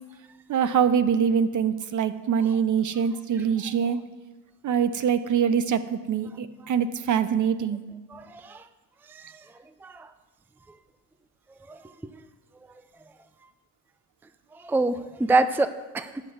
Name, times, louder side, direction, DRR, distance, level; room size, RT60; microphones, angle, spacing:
voice 1, 0.5-4.0 4.6-7.8, right 7 dB, 45° right, 13 dB, 0.9 m, -24 dB
voice 2, 8.1-8.6 9.1-9.2 9.8-10.1 11.7-11.8 14.6-15.7 15.9-16.2, right 3 dB, 5° right, 11 dB, 0.5 m, -25 dB
12.0 x 6.0 x 7.9 m, 1.2 s
supercardioid pair, 80°, 42 cm